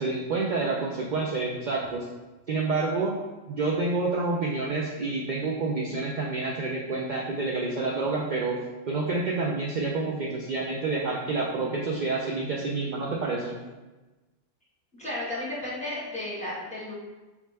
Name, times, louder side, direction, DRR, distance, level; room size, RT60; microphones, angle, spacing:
voice 1, 0.0-2.1 2.5-3.1 3.5-8.6 8.9-13.6, right 3 dB, 65° right, -2 dB, 0.4 m, -28 dB
voice 2, 15.0-16.9, left 1 dB, 5° left, -7 dB, 1.4 m, -33 dB
4.9 x 3.2 x 3.3 m, 1.2 s
omnidirectional pair, 1.3 m